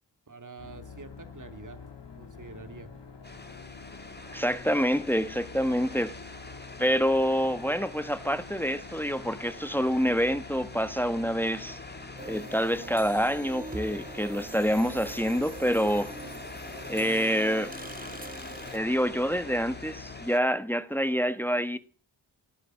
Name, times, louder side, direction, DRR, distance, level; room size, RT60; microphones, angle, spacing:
voice 1, 0.3-1.8 2.2-2.9, right 3 dB, 45° right, 2.6 m, -46 dB
sound 1, 0.6-20.3, left 5 dB, 70° left, 3.2 m, -47 dB
sound 2, 3.2-20.4, left 2 dB, 25° left, 2.3 m, -45 dB
voice 2, 4.3-6.2 6.8-11.8 12.2-16.1 16.9-17.7 18.7-21.8, equal, 5° left, 1.4 m, -27 dB
sound 3, 12.2-18.8, right 2 dB, 20° right, 1.6 m, -43 dB
17.5 x 9.8 x 7.6 m
cardioid pair, 45°, 43 cm